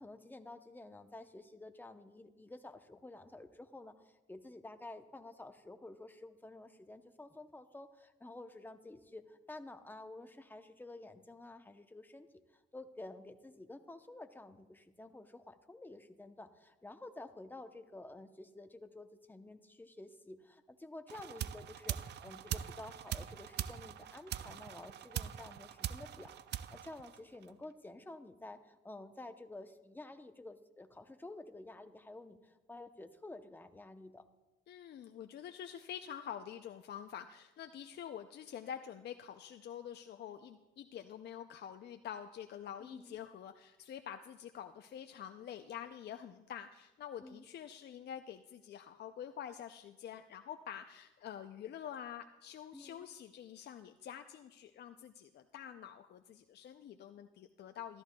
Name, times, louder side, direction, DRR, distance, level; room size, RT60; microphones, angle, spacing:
voice 1, 0.0-34.2 42.8-43.2 47.2-47.4 52.7-53.1, left 2 dB, 10° left, 8 dB, 0.7 m, -51 dB
sound 1, 21.1-27.6, right 10 dB, 60° right, 0.4 m, -42 dB
voice 2, 34.7-58.0, left 9 dB, 55° left, 7 dB, 0.5 m, -47 dB
13.5 x 13.0 x 2.3 m, 1.1 s
cardioid pair, 90°, 20 cm